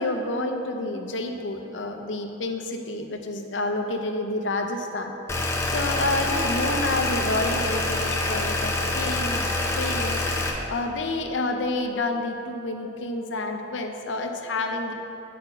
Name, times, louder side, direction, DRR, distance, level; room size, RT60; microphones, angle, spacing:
voice 1, 0.0-5.1 5.4-14.9, left 2 dB, 80° left, 4 dB, 0.7 m, -29 dB
sound 1, 5.3-10.5, left 2 dB, 15° left, 0.7 m, -26 dB
9.3 x 4.2 x 6.7 m, 2.8 s
head